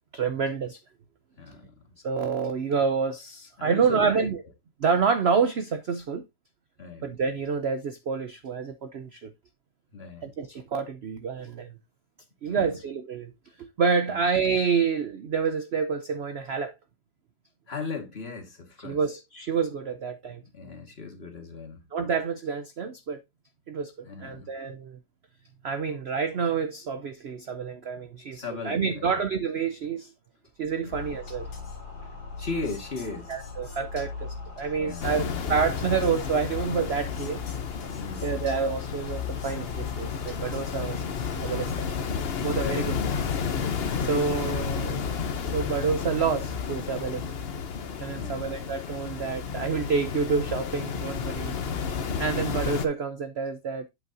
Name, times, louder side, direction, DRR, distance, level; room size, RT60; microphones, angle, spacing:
voice 1, 0.1-0.8 2.0-4.4 4.8-6.3 7.0-9.3 10.2-11.7 12.4-13.3 13.6-16.7 18.8-20.4 21.9-23.2 23.7-23.9 24.2-25.0 25.6-30.1 30.6-31.5 33.3-37.4 38.2-41.9 42.4-42.9 44.0-45.0 45.5-47.3 48.0-51.5 52.2-53.9, right 5 dB, 65° right, 0.6 m, -28 dB
voice 2, 1.4-1.9 3.6-4.3 6.8-7.1 9.9-10.3 12.4-12.7 14.1-14.2 17.7-19.0 20.4-21.9 24.0-24.5 28.3-29.2 30.9-31.0 32.1-33.3 34.8-35.4 38.0-38.3 42.5-42.9 48.1-48.4, left 4 dB, 35° left, 1.9 m, -37 dB
sound 1, 30.9-41.7, left 6 dB, 90° left, 3.1 m, -39 dB
sound 2, 35.0-52.9, left 6 dB, 50° left, 0.7 m, -31 dB
8.2 x 8.2 x 2.7 m
omnidirectional pair, 2.0 m